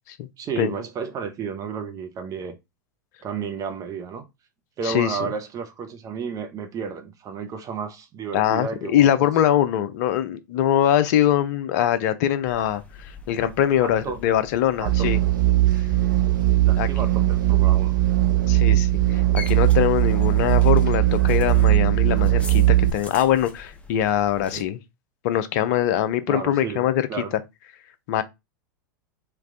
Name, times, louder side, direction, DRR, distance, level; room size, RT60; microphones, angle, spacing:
voice 1, 0.4-2.6 3.2-4.2 4.8-9.1 13.8-14.2 14.8-15.1 16.6-18.0 24.5-24.7 26.3-27.3, right 6 dB, 30° right, 1.0 m, -32 dB
voice 2, 4.8-5.3 8.3-15.2 16.8-16.9 18.5-24.8 25.2-27.0 28.1-28.2, left 11 dB, 55° left, 0.7 m, -22 dB
sound 1, 12.5-24.6, left 3 dB, 10° left, 1.0 m, -43 dB
sound 2, 14.9-22.9, right 15 dB, 70° right, 0.5 m, -19 dB
3.4 x 3.1 x 3.8 m
hypercardioid pair, 95°, 11 cm